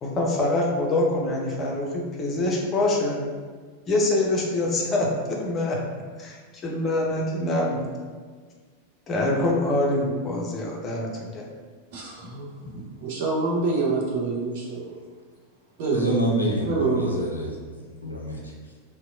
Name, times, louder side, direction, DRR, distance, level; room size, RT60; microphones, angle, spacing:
voice 1, 0.0-3.2 3.9-5.8 6.2-6.4 6.6-7.8 9.1-11.4, left 2 dB, 25° left, -1 dB, 0.5 m, -25 dB
voice 2, 11.9-15.0 15.8-16.1 16.7-17.2, right 3 dB, 50° right, -3 dB, 0.7 m, -27 dB
voice 3, 15.9-17.5 17.8-18.5, right 1 dB, 85° left, -2 dB, 0.5 m, -27 dB
2.8 x 2.2 x 2.4 m, 1.5 s
figure-of-eight pair, 90°, 0 cm